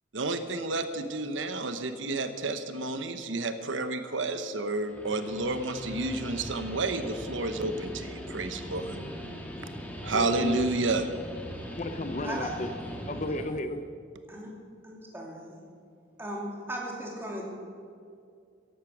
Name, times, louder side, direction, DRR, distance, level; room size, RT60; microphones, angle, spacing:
voice 1, 0.1-8.9 10.0-11.1, right 2 dB, 80° right, 9 dB, 0.9 m, -30 dB
Guitar, 4.8-13.5, equal, 10° left, 1.5 m, -40 dB
voice 2, 10.0-10.7 11.7-12.7 13.1-13.9, left 1 dB, 35° left, 9 dB, 0.6 m, -33 dB
voice 3, 14.8-15.6 16.2-17.5, right 1 dB, 10° right, -2 dB, 2.6 m, -37 dB
15.0 x 11.0 x 6.1 m, 2.3 s
head